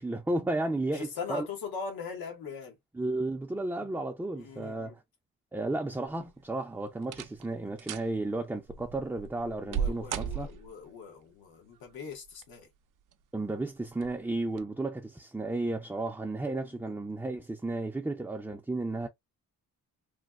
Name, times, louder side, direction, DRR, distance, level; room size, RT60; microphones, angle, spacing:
voice 1, 0.0-1.5 2.9-5.0 5.5-10.5 13.3-19.1, right 2 dB, 5° right, 0.4 m, -33 dB
voice 2, 0.9-2.8 3.8-3.9 4.4-4.9 9.6-12.7 16.6-16.9, left 5 dB, 85° left, 1.3 m, -41 dB
sound 1, 6.1-6.5 7.0-7.5 7.8-8.1 8.7-10.9 12.1-12.7 13.1-13.2 13.9-14.2 14.5-14.6, right 7 dB, 65° right, 0.5 m, -36 dB
3.1 x 2.2 x 2.3 m
cardioid pair, 80°, 35 cm